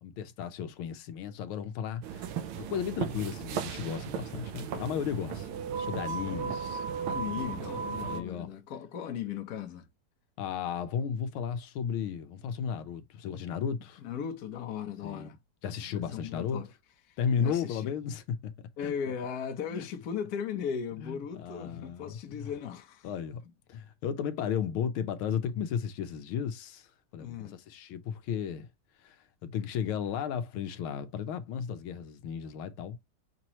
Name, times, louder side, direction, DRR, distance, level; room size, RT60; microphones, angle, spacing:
voice 1, 0.0-2.3 2.5-5.5 5.8-6.8 8.0-8.5 10.4-14.0 15.0-15.3 15.6-16.6 17.2-18.5 18.8-18.9 19.7-19.9 21.0-22.5 23.0-23.4 23.7-28.7 29.0-33.0, left 7 dB, 80° left, 1.5 m, -34 dB
sound 1, 2.0-8.2, right 6 dB, 75° right, 1.5 m, -36 dB
voice 2, 6.2-6.6 7.1-9.9 14.0-15.4 15.9-16.7 17.1-17.9 18.8-23.1 27.2-27.6, left 8 dB, 55° left, 1.1 m, -37 dB
6.1 x 2.9 x 2.9 m
omnidirectional pair, 2.3 m